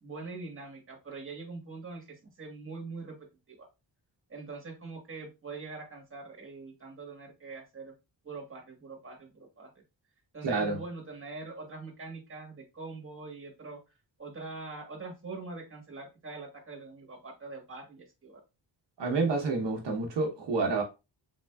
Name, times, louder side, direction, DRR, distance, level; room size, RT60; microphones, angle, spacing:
voice 1, 0.0-3.2 3.5-3.7 4.3-7.9 8.2-9.8 10.3-13.8 14.2-18.4, right 3 dB, 30° right, 1.3 m, -43 dB
voice 2, 10.4-10.8 19.0-20.8, right 3 dB, 70° right, 0.9 m, -28 dB
3.6 x 3.4 x 2.2 m
wide cardioid pair, 125°, 43 cm